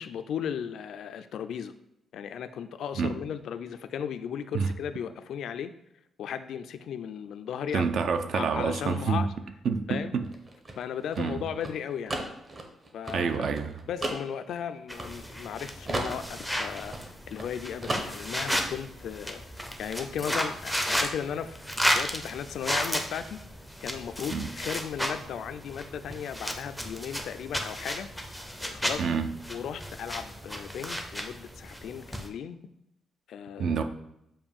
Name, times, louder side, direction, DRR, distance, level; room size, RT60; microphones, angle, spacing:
voice 1, 0.0-1.7 2.1-5.7 6.2-7.9 8.3-9.3 9.9-10.2 10.8-12.2 12.9-13.5 13.9-17.0 17.3-21.6 21.9-23.4 23.8-28.1 28.6-29.0 29.5-32.6 33.3-33.8, left 8 dB, 70° left, 0.4 m, -36 dB
voice 2, 7.7-9.2 9.6-10.3 11.2-11.4 13.1-13.8 24.3-24.5 29.0-29.3 33.6-33.8, right 5 dB, 60° right, 0.5 m, -28 dB
sound 1, 10.2-15.5 15.9-17.5 17.8-18.5, right 2 dB, 25° right, 0.8 m, -35 dB
sound 2, 14.9-32.3, equal, ahead, 0.5 m, -34 dB
7.1 x 2.6 x 5.2 m
cardioid pair, 165°, 0 cm